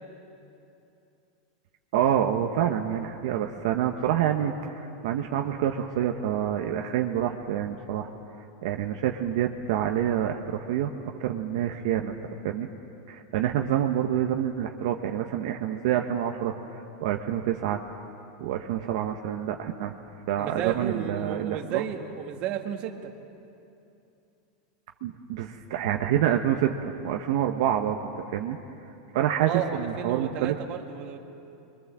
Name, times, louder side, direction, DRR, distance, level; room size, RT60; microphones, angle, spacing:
voice 1, 1.9-8.1 8.6-10.9 11.2-12.2 12.4-12.7 13.1-16.5 17.0-17.8 18.4-19.9 20.3-21.8 25.0-28.6 29.1-30.6, right 10 dB, 65° right, 3 dB, 1.2 m, -27 dB
voice 2, 20.4-23.1 29.4-31.2, right 9 dB, 40° right, 4 dB, 1.8 m, -33 dB
26.5 x 23.0 x 7.5 m, 2.8 s
supercardioid pair, 145°, 3 cm